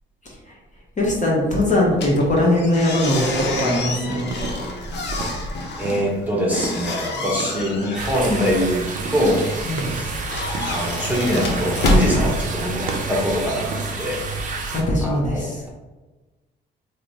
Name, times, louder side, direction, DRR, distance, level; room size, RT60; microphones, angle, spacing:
voice 1, 1.0-4.4 9.6-10.0 14.7-15.6, left 1 dB, 40° left, -3 dB, 1.0 m, -20 dB
sound 1, 1.9-13.1, left 1 dB, 60° left, 0.7 m, -27 dB
sound 2, 3.0-5.5 5.8-7.8 8.1-8.5 8.9-10.9 11.3-11.8 12.1-12.5 12.7-14.1, right 2 dB, 85° right, 0.6 m, -34 dB
voice 2, 5.8-9.4 9.8-10.1 10.6-13.7 14.0-14.2 15.0-15.7, equal, 10° right, -4 dB, 0.8 m, -23 dB
sound 3, 7.9-14.8, right 4 dB, 40° right, 0.6 m, -29 dB
3.2 x 2.0 x 4.0 m, 1.2 s
cardioid pair, 90°, 20 cm